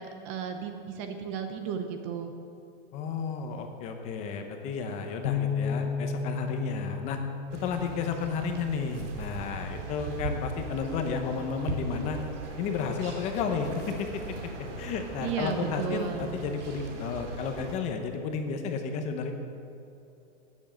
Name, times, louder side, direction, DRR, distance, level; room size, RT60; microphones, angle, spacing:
voice 1, 0.0-2.3 15.2-16.4, right 7 dB, 25° right, 7 dB, 0.7 m, -34 dB
voice 2, 2.9-7.2 7.5-12.2 12.6-14.5 14.8-19.3, left 5 dB, 20° left, 5 dB, 0.8 m, -32 dB
Bass guitar, 5.2-11.5, left 7 dB, 60° left, 0.9 m, -35 dB
sound 1, 7.5-17.8, right 3 dB, 80° right, 2.8 m, -39 dB
12.5 x 9.6 x 7.5 m, 2.7 s
supercardioid pair, 160°, 35 cm